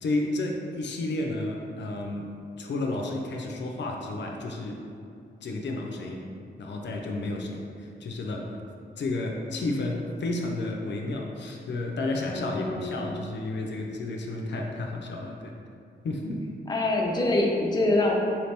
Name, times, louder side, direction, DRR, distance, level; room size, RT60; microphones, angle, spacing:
voice 1, 0.0-4.9 5.4-6.3 6.6-8.6 9.0-15.5 16.0-16.5, left 2 dB, 80° left, 1 dB, 0.4 m, -32 dB
voice 2, 12.3-13.1 16.7-18.1, left 2 dB, 25° left, -1 dB, 0.5 m, -25 dB
4.3 x 2.8 x 3.2 m, 2.5 s
wide cardioid pair, 105°, 18 cm